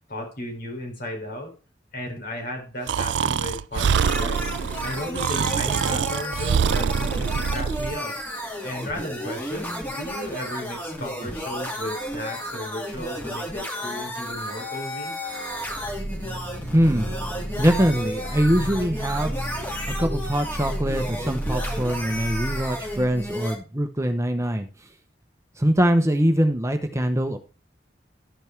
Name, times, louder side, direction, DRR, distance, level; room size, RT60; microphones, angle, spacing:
voice 1, 0.1-1.5 1.9-4.4 4.8-8.2 8.6-15.1, left 1 dB, 60° left, 1 dB, 3.9 m, -34 dB
Breathing, 2.9-8.0, right 7 dB, 70° right, 0.4 m, -24 dB
sound 1, 3.9-23.5, equal, 10° left, 2.4 m, -33 dB
sound 2, 15.5-23.4, equal, 35° left, 1.7 m, -33 dB
voice 2, 16.7-17.2 17.6-19.3 20.0-24.7 25.6-27.4, equal, 15° right, 7 dB, 0.8 m, -23 dB
12.5 x 5.3 x 4.5 m, 0.33 s
head